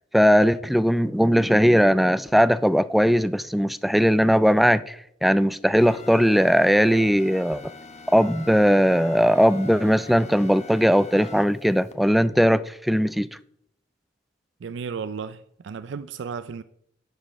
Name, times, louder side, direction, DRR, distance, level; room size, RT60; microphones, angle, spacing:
voice 1, 0.1-5.0 5.2-7.6 8.1-13.3, equal, ahead, 0.3 m, -19 dB
sound 1, 5.8-11.9, left 3 dB, 40° left, 1.2 m, -43 dB
voice 2, 14.6-16.6, right 6 dB, 70° right, 0.4 m, -34 dB
10.5 x 6.1 x 6.5 m
head